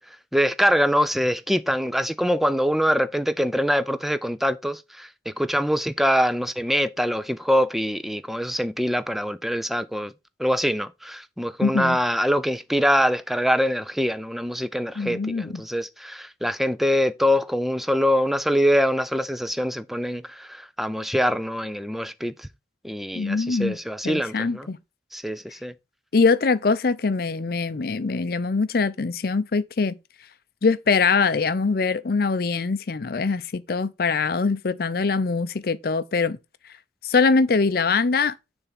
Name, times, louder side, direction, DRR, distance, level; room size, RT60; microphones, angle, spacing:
voice 1, 0.0-10.1 10.4-22.5 22.8-24.7 25.1-25.7, equal, ahead, 0.4 m, -24 dB
voice 2, 11.6-12.0 15.0-15.6 23.1-23.8 24.0-24.8 26.1-30.0 30.6-36.4 37.0-38.3, left 4 dB, 55° left, 0.5 m, -23 dB
6.7 x 3.5 x 5.8 m
head